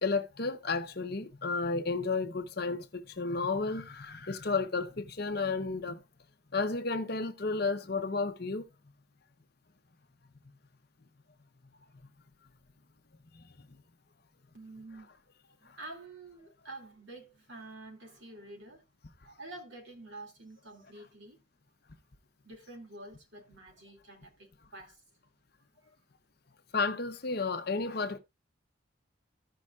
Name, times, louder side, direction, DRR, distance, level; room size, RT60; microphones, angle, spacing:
voice 1, 0.0-6.0 6.5-8.6 13.3-13.4 26.7-28.2, left 4 dB, 50° left, 0.9 m, -32 dB
voice 2, 14.5-15.1 15.6-18.8 19.2-21.4 22.4-25.0, right 2 dB, 65° right, 2.5 m, -48 dB
16.0 x 5.4 x 2.4 m
head